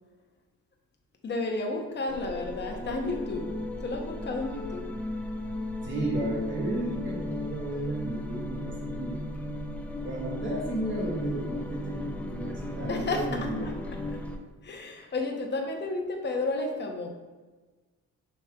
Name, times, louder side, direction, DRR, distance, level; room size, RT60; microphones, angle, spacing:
voice 1, 1.2-5.0 12.9-13.2 13.6-13.7 14.6-17.1, left 3 dB, 35° left, 2 dB, 0.8 m, -32 dB
sound 1, 2.1-14.4, left 2 dB, 5° left, 0.4 m, -36 dB
voice 2, 5.8-9.2 10.0-13.7, right 1 dB, 40° right, -3 dB, 1.2 m, -33 dB
5.6 x 3.2 x 2.3 m, 1.3 s
cardioid pair, 90°, 30 cm